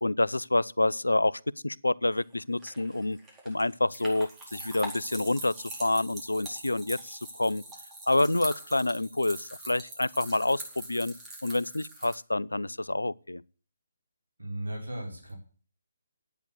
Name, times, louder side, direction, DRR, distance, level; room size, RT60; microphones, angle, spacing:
voice 1, 0.0-3.2 3.4-5.5 5.8-7.6 8.1-11.1 11.4-13.4, left 2 dB, 85° left, 0.5 m, -28 dB
sound 1, 2.2-12.1, right 1 dB, 15° right, 4.5 m, -43 dB
voice 2, 14.4-15.4, right 1 dB, 80° right, 4.4 m, -36 dB
10.5 x 9.1 x 8.2 m
figure-of-eight pair, 145°, 0 cm